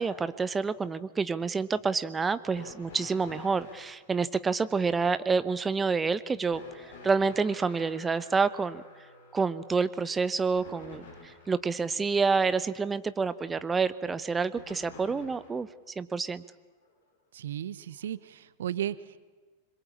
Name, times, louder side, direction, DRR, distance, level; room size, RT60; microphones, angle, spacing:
voice 1, 0.0-8.8 9.3-15.7 16.0-16.4, right 4 dB, 15° right, 15 dB, 0.9 m, -28 dB
sound 1, 2.5-4.0 6.5-11.6 14.5-15.6 16.8-16.9 18.0-18.1, left 3 dB, 60° left, 6.3 m, -49 dB
voice 2, 17.3-19.0, right 11 dB, 60° right, 18 dB, 0.9 m, -34 dB
25.5 x 23.0 x 8.5 m, 1.3 s
figure-of-eight pair, 90°, 0 cm